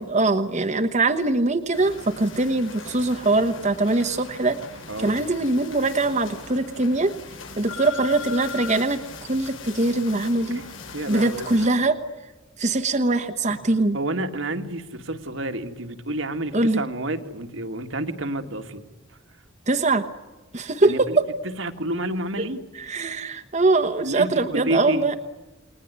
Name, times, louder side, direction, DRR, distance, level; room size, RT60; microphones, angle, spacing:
voice 1, 0.0-4.6 5.0-7.1 7.6-10.6 11.1-12.0 12.6-14.0 16.5-16.8 19.7-20.1 20.5-21.2 22.4-22.5 22.7-25.2, right 2 dB, 35° right, 7 dB, 1.1 m, -22 dB
sound 1, 1.7-11.7, left 4 dB, 80° left, 7.2 m, -39 dB
voice 2, 10.9-11.5 13.9-18.8 20.6-21.2 21.4-22.6 24.0-25.0, right 1 dB, 70° right, 7 dB, 1.9 m, -29 dB
29.5 x 20.5 x 9.5 m, 1.2 s
head